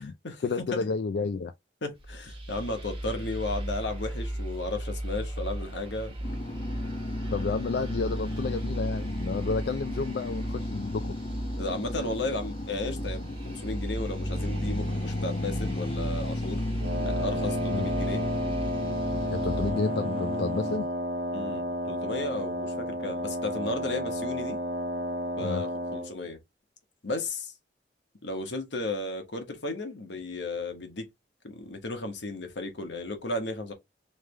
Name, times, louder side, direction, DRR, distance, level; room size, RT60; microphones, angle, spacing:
voice 1, 0.4-1.5 7.3-11.2 17.7-17.9 19.3-20.9 25.4-25.6, left 4 dB, 60° left, 0.3 m, -31 dB
voice 2, 1.8-6.1 11.6-16.7 17.0-18.2 21.3-24.6 25.4-26.4 27.0-27.5 28.2-31.1 31.4-33.7, left 2 dB, 85° left, 1.2 m, -34 dB
sound 1, 1.9-19.7, right 1 dB, 30° right, 1.0 m, -36 dB
sound 2, 6.2-20.8, left 2 dB, 35° left, 0.8 m, -35 dB
Wind instrument woodwind instrument, 16.8-26.1, equal, 80° right, 0.8 m, -32 dB
3.3 x 3.3 x 3.2 m
head